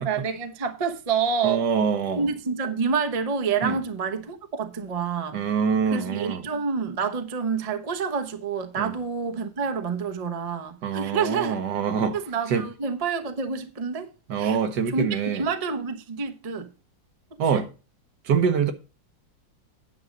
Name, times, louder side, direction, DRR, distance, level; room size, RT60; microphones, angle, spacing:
voice 1, 0.0-1.7 2.1-5.4 5.9-11.6 12.1-14.1 14.4-14.6 14.9-16.7 17.5-17.6, right 5 dB, 30° right, 0.7 m, -28 dB
voice 2, 1.4-2.3 3.6-3.7 5.3-6.4 8.8-8.9 10.8-12.2 12.5-12.6 14.3-15.4 17.4-17.7 18.2-18.7, right 6 dB, 65° right, 1.6 m, -24 dB
9.6 x 6.3 x 5.2 m
omnidirectional pair, 2.0 m